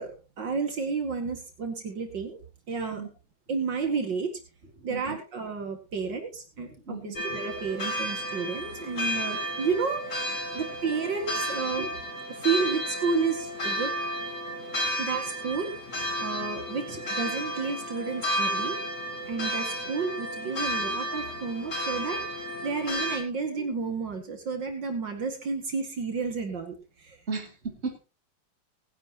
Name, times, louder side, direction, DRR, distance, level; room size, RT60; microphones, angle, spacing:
voice 1, 0.0-2.4 2.7-3.0 3.5-4.4 4.8-10.2 10.5-11.9 12.3-13.9 15.0-15.7 16.2-18.8 19.3-22.2 22.6-27.2, right 5 dB, 65° right, 4 dB, 2.8 m, -31 dB
voice 2, 6.9-7.2 11.7-11.9 23.6-23.7 27.3-28.0, right 4 dB, 35° right, 3 dB, 2.8 m, -35 dB
sound 1, 7.2-23.2, equal, 40° left, 2.9 m, -32 dB
19.5 x 11.0 x 3.0 m, 0.30 s
omnidirectional pair, 2.1 m